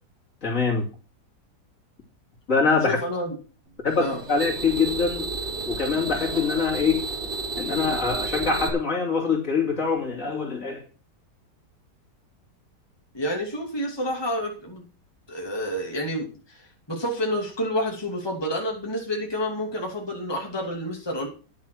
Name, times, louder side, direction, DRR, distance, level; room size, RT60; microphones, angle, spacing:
voice 1, 0.4-0.9 2.5-3.0 3.8-5.3 5.7-7.1 7.6-10.8, left 5 dB, 50° left, 3.6 m, -24 dB
voice 2, 2.8-3.3 4.0-4.2 13.1-14.8 15.3-21.3, equal, 15° left, 2.7 m, -29 dB
sound 1, 3.9-8.7, right 3 dB, 40° right, 1.9 m, -31 dB
10.5 x 7.6 x 6.3 m
omnidirectional pair, 1.8 m